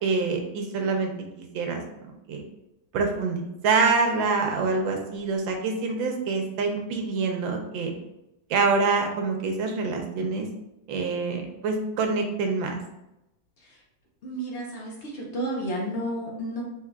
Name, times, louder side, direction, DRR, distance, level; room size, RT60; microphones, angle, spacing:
voice 1, 0.0-1.1 1.4-1.8 2.3-2.4 2.9-7.9 8.5-10.5 10.9-12.8, right 4 dB, 80° right, 3 dB, 1.4 m, -26 dB
voice 2, 14.2-16.6, right 1 dB, 50° left, -2 dB, 0.8 m, -32 dB
4.7 x 3.7 x 2.3 m, 0.89 s
omnidirectional pair, 2.2 m